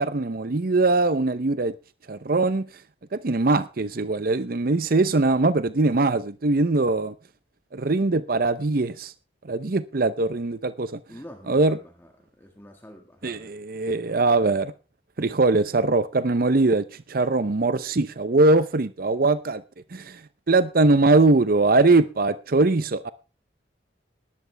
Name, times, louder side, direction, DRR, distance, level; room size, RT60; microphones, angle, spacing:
voice 1, 0.0-1.7 2.1-2.7 3.1-7.1 7.7-9.1 9.5-11.0 11.5-11.8 13.2-14.7 15.2-19.6 19.9-20.2 20.5-23.1, right 3 dB, 50° right, 0.7 m, -21 dB
voice 2, 11.1-12.1 12.4-13.5, equal, 10° left, 1.7 m, -46 dB
19.0 x 11.0 x 3.4 m
head